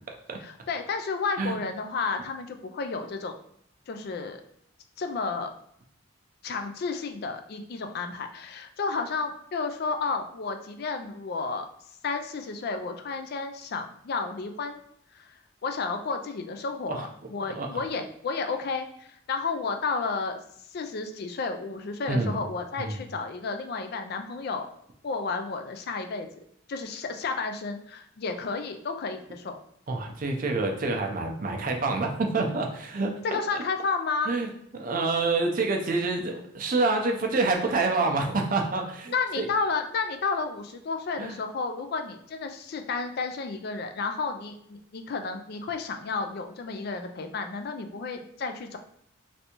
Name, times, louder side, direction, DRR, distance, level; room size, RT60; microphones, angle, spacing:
voice 1, 0.4-3.3 3.9-4.4 5.0-5.5 6.4-11.7 12.0-14.8 15.1-15.3 15.6-20.4 20.7-24.7 25.0-26.4 26.7-29.6 33.2-34.3 39.1-48.8, left 4 dB, 50° left, 7 dB, 0.3 m, -32 dB
voice 2, 22.1-22.4 22.8-23.0 29.9-33.1 34.3-39.5 41.2-41.4, right 3 dB, 40° right, 3 dB, 0.5 m, -27 dB
3.2 x 2.6 x 2.9 m, 0.69 s
head